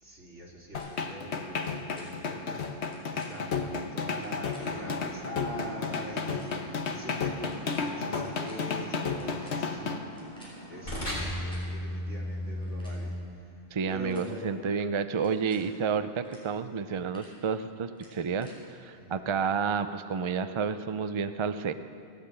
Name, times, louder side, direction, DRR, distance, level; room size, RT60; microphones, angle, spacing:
voice 1, 0.0-10.0 10.7-13.2 13.9-14.5 18.9-19.2, equal, 85° right, -3 dB, 3.2 m, -43 dB
sound 1, 0.7-10.0, left 4 dB, 70° left, 1.3 m, -33 dB
sound 2, 0.7-0.9 1.5-1.7 1.9-2.1 2.8-3.3 4.1-4.6 5.4-5.5 5.7-5.9 6.3-6.5 7.4-7.8 8.1-8.5 9.1-10.5 11.2-11.6 12.5-13.0 13.7-14.3 15.1-15.6 16.2-16.4 16.8-17.3 17.9-18.6, equal, 5° left, 4.9 m, -55 dB
sound 3, 4.6-13.2, left 1 dB, 45° left, 4.4 m, -39 dB
voice 2, 13.7-18.5 18.8-21.7, right 6 dB, 40° right, 10 dB, 0.4 m, -30 dB
16.5 x 9.9 x 8.6 m, 2.3 s
omnidirectional pair, 1.2 m